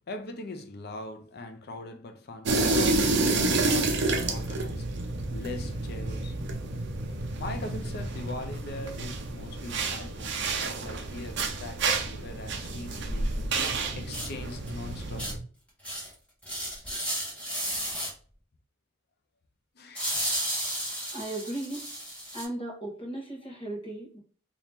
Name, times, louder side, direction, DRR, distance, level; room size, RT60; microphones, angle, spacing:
voice 1, 0.1-4.9 5.3-6.4 7.4-15.3 19.8-20.2 22.7-22.8, left 2 dB, 55° left, 0.6 m, -41 dB
sound 1, 2.5-15.4, right 3 dB, 60° right, 0.6 m, -29 dB
sound 2, 13.6-13.7 14.1-14.3 14.7-14.8 15.2-15.3 15.8-16.1 16.4-18.1 20.0-22.5, equal, 5° left, 1.3 m, -33 dB
voice 2, 21.1-21.9 22.3-24.2, right 1 dB, 25° left, 1.3 m, -36 dB
3.0 x 2.8 x 3.5 m
head